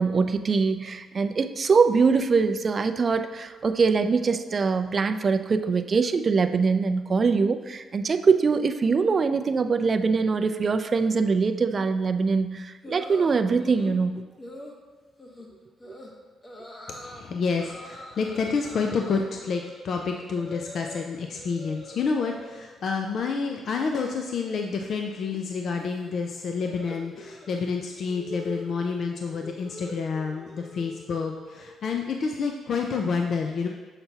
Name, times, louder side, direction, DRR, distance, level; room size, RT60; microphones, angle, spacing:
voice 1, 0.0-14.2, right 5 dB, 40° right, 9 dB, 0.3 m, -23 dB
sound 1, 12.8-14.0 14.4-14.8 15.2-15.5 15.8-16.1 16.4-17.2 17.6-21.1 21.3-22.6 23.0-23.4 23.6-31.8, left 1 dB, 30° left, 1.0 m, -44 dB
voice 2, 17.0-33.7, left 5 dB, 60° left, 3 dB, 0.4 m, -29 dB
6.7 x 5.7 x 2.8 m, 1.3 s
cardioid pair, 90°, 0 cm